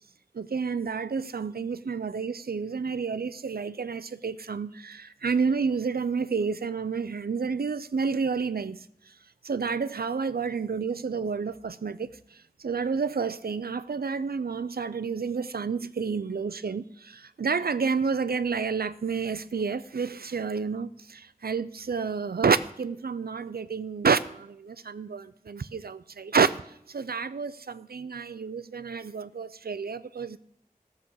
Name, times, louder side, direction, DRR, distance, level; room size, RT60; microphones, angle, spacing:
voice 1, 0.3-9.1 9.4-26.6 26.9-30.4, right 5 dB, 85° right, 0.5 m, -29 dB
14.0 x 6.1 x 7.1 m
wide cardioid pair, 45°, 15 cm